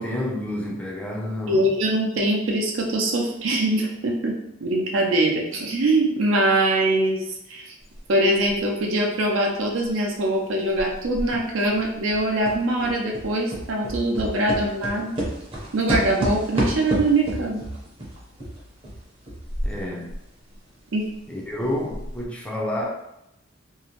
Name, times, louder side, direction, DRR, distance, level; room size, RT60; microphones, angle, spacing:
voice 1, 0.0-1.7 19.6-20.1 21.3-22.9, left 1 dB, 5° left, -2 dB, 0.4 m, -29 dB
voice 2, 1.5-7.7 8.1-15.1 15.7-17.6 20.9-21.1, right 1 dB, 75° right, 0 dB, 0.6 m, -23 dB
sound 1, 8.0-8.1 8.5-10.4 10.7-20.3 20.5-20.6 21.2-21.3 21.7-22.3, right 1 dB, 25° right, 0.6 m, -30 dB
2.6 x 2.1 x 2.9 m, 0.84 s
head